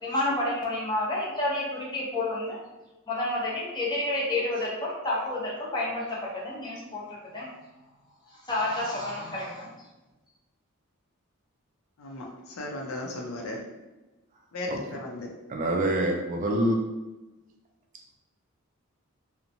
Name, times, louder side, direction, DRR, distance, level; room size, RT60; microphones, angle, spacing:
voice 1, 0.0-2.6 3.1-7.0 7.3-7.5 8.5-9.7, left 1 dB, 20° left, -5 dB, 0.6 m, -29 dB
voice 2, 12.6-13.6 14.5-15.3, left 2 dB, 80° left, 0 dB, 0.5 m, -35 dB
voice 3, 15.5-16.8, right 1 dB, 35° right, 1 dB, 0.3 m, -26 dB
2.8 x 2.1 x 2.5 m, 1.1 s
head